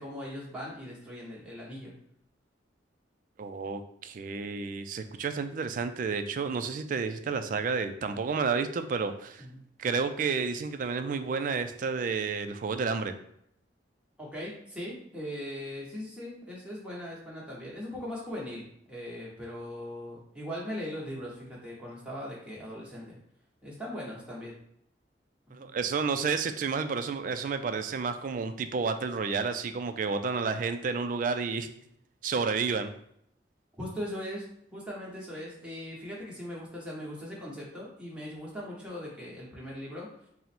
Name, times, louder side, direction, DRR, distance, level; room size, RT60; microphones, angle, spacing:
voice 1, 0.0-1.9 9.4-9.6 14.2-23.2 23.6-24.5 25.5-25.7 33.8-34.5 34.7-40.1, equal, 5° right, -5 dB, 1.0 m, -39 dB
voice 2, 3.4-9.4 9.8-13.1 25.5-31.7 32.2-32.9, right 5 dB, 45° right, 9 dB, 0.3 m, -31 dB
3.8 x 2.1 x 4.3 m, 0.71 s
head